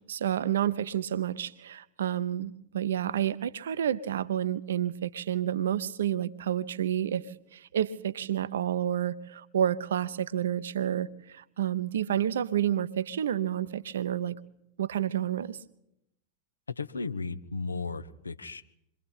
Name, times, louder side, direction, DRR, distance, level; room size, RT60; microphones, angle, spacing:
voice 1, 0.0-7.3 7.5-14.4 14.8-15.6, right 10 dB, 65° right, 0.8 m, -30 dB
voice 2, 16.7-18.6, left 4 dB, 75° left, 1.0 m, -35 dB
27.5 x 23.0 x 4.2 m
figure-of-eight pair, 90°, 0 cm